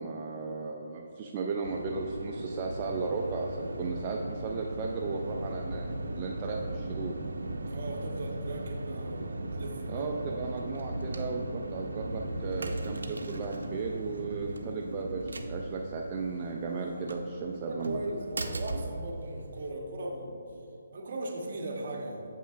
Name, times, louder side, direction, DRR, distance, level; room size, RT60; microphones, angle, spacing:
voice 1, 0.0-7.2 9.9-18.0, right 4 dB, 25° right, -1 dB, 0.3 m, -35 dB
sound 1, 1.6-19.7, right 1 dB, 85° right, 0.5 m, -37 dB
voice 2, 7.7-10.0 17.7-20.4 20.9-22.3, right 1 dB, 50° right, 1 dB, 0.9 m, -38 dB
7.2 x 5.5 x 2.4 m, 2.7 s
hypercardioid pair, 160°, 0 cm